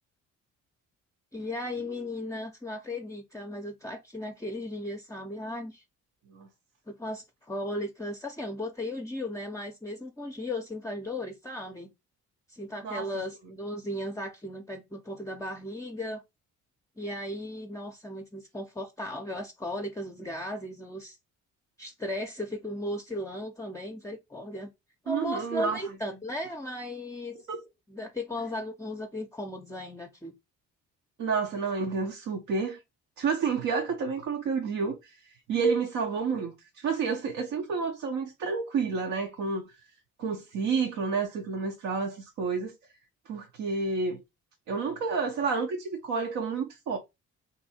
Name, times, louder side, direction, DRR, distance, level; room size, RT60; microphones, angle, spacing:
voice 1, 1.3-5.8 6.9-11.9 12.5-16.2 17.0-21.2 21.8-24.7 25.0-27.4 27.9-30.3, left 1 dB, 10° left, 0.5 m, -36 dB
voice 2, 25.1-25.8 27.5-27.6 31.2-32.8 33.2-35.2 35.5-39.7 40.2-42.7 43.3-44.2 44.7-47.0, right 5 dB, 75° right, 0.8 m, -30 dB
2.7 x 2.6 x 4.1 m
cardioid pair, 90°, 30 cm